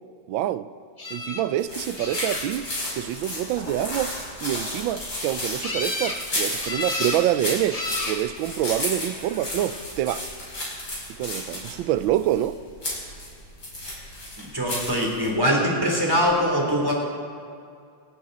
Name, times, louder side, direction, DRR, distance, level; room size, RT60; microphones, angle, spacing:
voice 1, 0.3-0.7 1.1-2.7 3.0-4.1 4.4-10.3 11.2-12.6, right 12 dB, 85° right, 1.3 m, -26 dB
sound 1, 1.0-1.4 2.0-2.7 5.6-6.2 6.6-7.2 7.7-8.2 9.1-9.6 15.8-15.9 16.3-16.4, left 2 dB, 20° left, 1.2 m, -32 dB
sound 2, 1.6-15.3, left 1 dB, 55° left, 5.8 m, -33 dB
voice 2, 14.4-16.9, equal, 10° right, 3.2 m, -22 dB
28.5 x 11.5 x 4.0 m
omnidirectional pair, 2.1 m